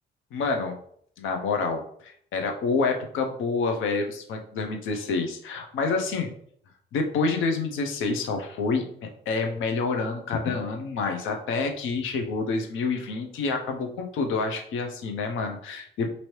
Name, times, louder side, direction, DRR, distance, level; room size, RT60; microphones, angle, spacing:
voice 1, 0.3-0.8 1.2-6.3 6.9-16.1, left 4 dB, 80° left, 4 dB, 0.6 m, -28 dB
3.0 x 2.7 x 2.9 m, 0.63 s
cardioid pair, 90°, 20 cm